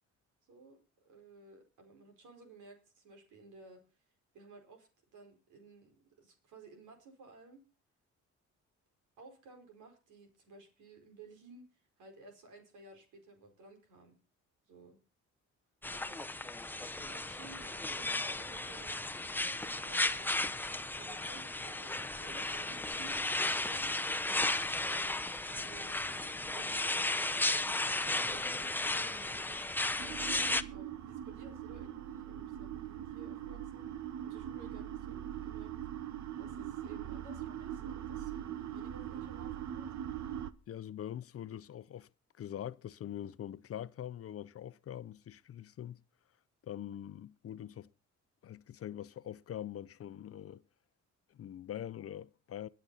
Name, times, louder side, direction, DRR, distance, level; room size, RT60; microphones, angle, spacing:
voice 1, 0.4-3.8 4.3-7.6 9.2-11.6 12.0-14.1 14.7-15.0 15.9-16.3 17.0-20.4 20.9-27.2 27.8-29.7 30.2-33.9 34.2-35.7 36.4-39.9, right 3 dB, 85° right, 4.6 m, -56 dB
sound 1, 15.8-30.6, left 2 dB, 5° left, 0.7 m, -34 dB
sound 2, 30.0-40.5, right 10 dB, 65° right, 1.0 m, -41 dB
voice 2, 40.7-42.1 42.4-46.0 46.6-47.9 48.4-50.6 51.3-52.7, left 10 dB, 50° left, 0.6 m, -43 dB
22.5 x 7.8 x 4.0 m
cardioid pair, 90°, 30 cm